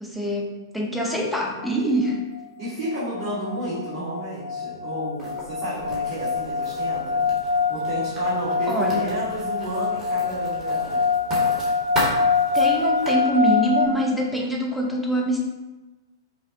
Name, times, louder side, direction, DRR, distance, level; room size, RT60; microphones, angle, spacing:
voice 1, 0.0-2.2 8.7-9.2 12.5-15.4, equal, ahead, -1 dB, 0.6 m, -24 dB
sound 1, 1.6-1.7 2.1-2.4 2.8-13.9, left 4 dB, 50° left, 0.4 m, -25 dB
voice 2, 2.6-7.2 7.7-11.0, right 1 dB, 40° right, -12 dB, 1.5 m, -31 dB
Writing, 5.2-13.1, equal, 20° right, 1.3 m, -35 dB
5.4 x 2.1 x 2.7 m, 1.1 s
figure-of-eight pair, 105°, 2 cm